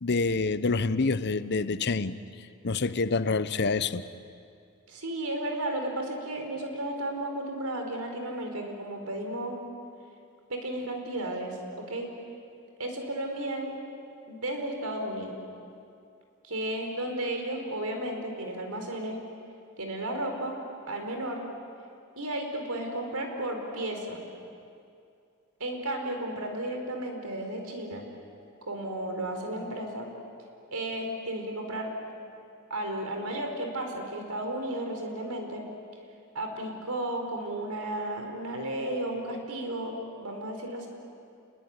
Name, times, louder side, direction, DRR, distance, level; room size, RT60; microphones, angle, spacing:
voice 1, 0.0-2.2 2.6-4.0, left 3 dB, 50° left, 13 dB, 0.8 m, -27 dB
voice 2, 4.9-9.6 10.5-12.1 12.8-13.7 14.3-15.4 16.4-19.2 19.8-20.5 20.9-21.4 22.2-24.2 25.6-28.0 28.7-30.1 30.7-31.9 32.7-35.6 36.3-40.9, right 1 dB, 90° right, 3 dB, 4.7 m, -33 dB
29.5 x 21.0 x 9.7 m, 2.5 s
head